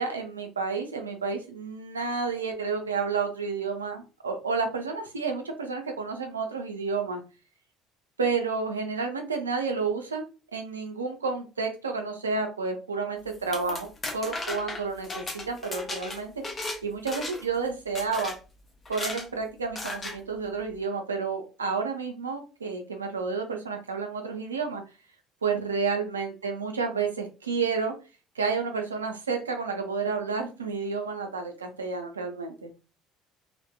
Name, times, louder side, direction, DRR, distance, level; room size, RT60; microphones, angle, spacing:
voice 1, 0.0-7.2 8.2-10.2 10.5-13.9 14.1-18.3 18.9-24.8 25.4-27.9 28.4-32.7, right 4 dB, 90° right, 4 dB, 0.4 m, -30 dB
sound 1, 13.3-16.8 17.1-17.5 17.9-18.4 18.8-19.3 19.7-20.2, left 2 dB, 30° left, 0.7 m, -35 dB
2.6 x 2.1 x 2.2 m, 0.33 s
hypercardioid pair, 60°, 0 cm